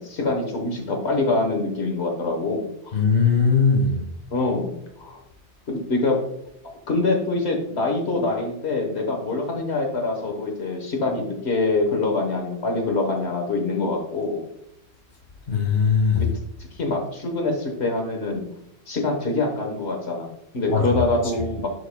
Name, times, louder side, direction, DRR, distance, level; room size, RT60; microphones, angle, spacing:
voice 1, 0.0-3.0 4.3-5.2 5.7-6.2 6.9-14.4 16.1-16.3 16.7-18.4 18.9-21.7, left 2 dB, 75° left, 1 dB, 1.4 m, -25 dB
voice 2, 2.9-4.0 15.5-16.2 20.7-21.0, left 5 dB, 55° left, 1 dB, 1.6 m, -19 dB
11.5 x 4.6 x 2.2 m, 0.76 s
omnidirectional pair, 1.1 m